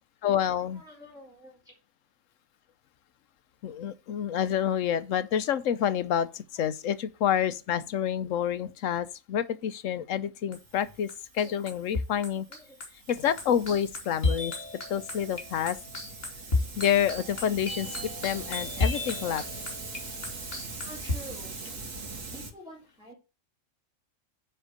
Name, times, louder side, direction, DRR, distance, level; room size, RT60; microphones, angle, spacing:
voice 1, 0.2-0.8 3.6-11.1 11.3-12.5 13.1-14.5 14.9-15.8 16.8-19.4, left 9 dB, 75° left, 1.1 m, -28 dB
voice 2, 0.7-1.7 6.6-6.7 11.4-11.5 12.5-12.8 20.7-21.6 22.3-23.1, equal, 5° right, 3.7 m, -48 dB
sound 1, 10.5-10.8 11.1-21.1, left 3 dB, 45° left, 3.1 m, -33 dB
Hiss, 10.6-22.5, right 3 dB, 75° right, 2.0 m, -42 dB
10.0 x 4.5 x 6.6 m
omnidirectional pair, 1.4 m